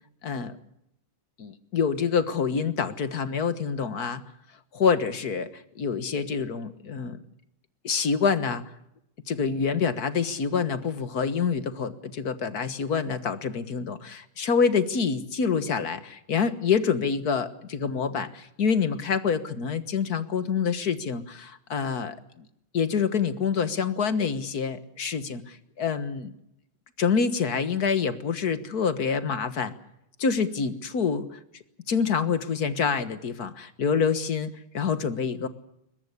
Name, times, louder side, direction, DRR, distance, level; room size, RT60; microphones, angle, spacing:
voice 1, 0.2-0.5 1.4-4.2 4.7-7.2 7.8-8.6 9.3-22.2 22.7-26.3 27.0-29.7 30.2-31.4 31.9-35.5, left 6 dB, 50° left, 11 dB, 1.7 m, -26 dB
22.5 x 20.0 x 8.2 m, 0.79 s
omnidirectional pair, 2.4 m